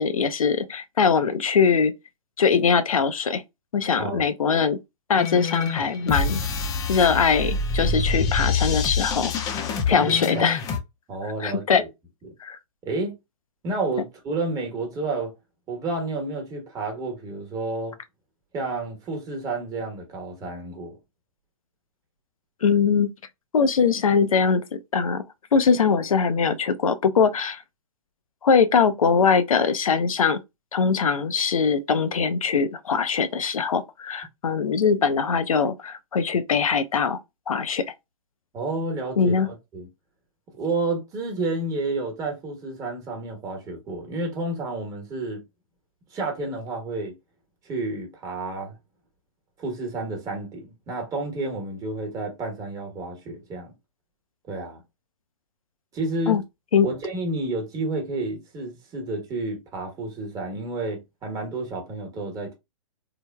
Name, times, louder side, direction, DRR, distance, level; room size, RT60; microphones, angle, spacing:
voice 1, 0.0-1.9 2.4-3.4 3.7-4.8 5.1-6.4 6.9-9.3 9.9-10.6 11.4-11.8 12.4-12.6 22.6-23.1 23.5-25.2 25.5-27.6 28.4-30.4 30.7-37.2 37.5-37.9 39.2-39.5 56.3-56.4 56.7-56.9, left 6 dB, 75° left, 0.4 m, -21 dB
sound 1, 5.2-10.8, left 4 dB, 20° left, 0.4 m, -26 dB
voice 2, 9.9-10.5 11.1-11.9 12.2-12.3 12.8-13.1 13.6-15.3 15.7-17.9 18.5-21.0 38.5-39.9 40.6-45.4 46.1-47.1 47.6-48.7 49.6-53.7 54.5-54.8 55.9-56.4 56.8-62.5, right 2 dB, 20° right, 1.0 m, -30 dB
3.2 x 2.1 x 2.2 m
figure-of-eight pair, 120°, 18 cm